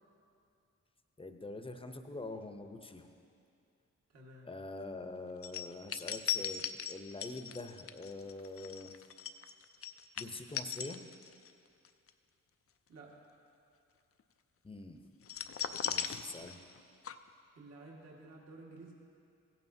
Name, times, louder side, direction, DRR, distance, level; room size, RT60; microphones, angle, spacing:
voice 1, 1.2-3.1 4.4-9.0 10.2-11.0 14.6-15.0 15.8-16.6, left 2 dB, 15° left, 6 dB, 0.8 m, -45 dB
voice 2, 4.1-4.5 12.9-13.2 17.6-18.9, right 2 dB, 55° right, -3 dB, 1.8 m, -52 dB
sound 1, 5.4-11.5 11.8-12.1 15.2-16.8 17.0-17.1, left 8 dB, 45° left, 0.5 m, -38 dB
16.0 x 9.2 x 2.8 m, 2.5 s
cardioid pair, 50°, 31 cm